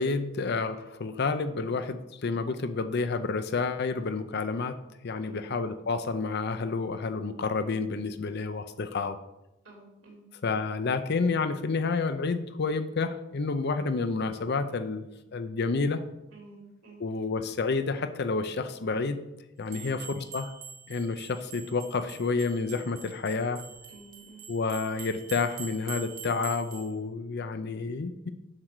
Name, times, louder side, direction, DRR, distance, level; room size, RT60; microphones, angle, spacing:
voice 1, 0.0-4.8 5.0-9.2 10.4-16.0 17.0-19.2 19.6-20.5 20.9-23.6 24.5-28.3, left 4 dB, 55° left, 11 dB, 0.5 m, -29 dB
voice 2, 9.6-10.2 16.3-17.0 19.6-20.1 23.9-24.5, right 3 dB, 65° right, -2 dB, 3.0 m, -51 dB
sound 1, 19.7-26.9, right 7 dB, 45° right, 1.1 m, -45 dB
7.4 x 4.7 x 6.6 m, 0.93 s
head